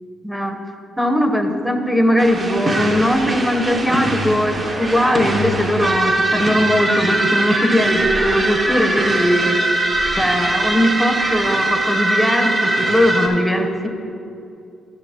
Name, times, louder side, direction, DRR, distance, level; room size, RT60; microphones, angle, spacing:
voice 1, 0.2-0.5 1.0-9.6 10.2-13.9, equal, ahead, 4 dB, 0.9 m, -19 dB
sound 1, 2.2-13.3, right 1 dB, 40° right, 1.2 m, -21 dB
13.5 x 6.7 x 2.9 m, 2.7 s
cardioid pair, 90°, 0 cm